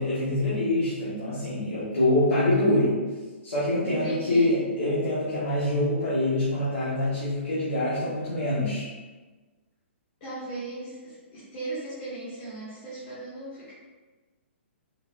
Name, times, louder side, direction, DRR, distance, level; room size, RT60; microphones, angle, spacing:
voice 1, 0.0-3.0 3.4-8.9, left 1 dB, 85° left, -10 dB, 1.1 m, -25 dB
voice 2, 3.8-4.7 10.2-13.7, right 2 dB, 45° left, -10 dB, 1.1 m, -37 dB
3.8 x 2.3 x 2.4 m, 1.3 s
hypercardioid pair, 140°, 7 cm